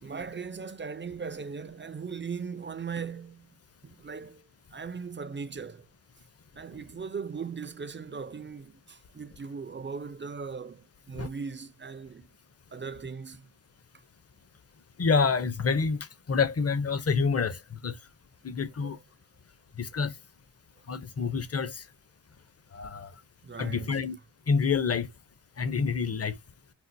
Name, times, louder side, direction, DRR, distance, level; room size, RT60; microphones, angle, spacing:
voice 1, 0.0-3.6 3.8-5.9 6.5-12.3 12.7-13.5 13.9-14.0 18.5-18.6 18.8-19.0 23.4-24.1, right 5 dB, 25° right, 0.3 m, -39 dB
voice 2, 15.0-16.0 16.3-17.6 17.8-17.9 18.4-19.0 19.8-20.1 20.9-21.8 22.7-23.1 23.6-24.1 24.5-25.1 25.6-26.3, left 5 dB, 30° left, 0.5 m, -27 dB
4.2 x 2.0 x 2.5 m
cardioid pair, 50°, 48 cm